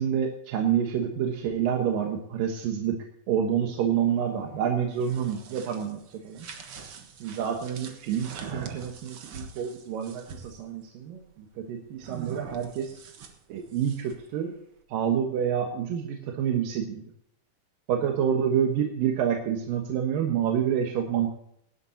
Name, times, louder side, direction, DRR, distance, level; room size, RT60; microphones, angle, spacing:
voice 1, 0.0-3.0 3.3-6.5 7.2-13.0 13.5-14.5 14.9-17.0 17.9-21.3, right 8 dB, 75° right, 2 dB, 2.9 m, -28 dB
sound 1, 4.8-10.6 12.0-14.3, right 6 dB, 55° right, 1.5 m, -43 dB
18.0 x 12.0 x 2.8 m, 0.71 s
omnidirectional pair, 4.1 m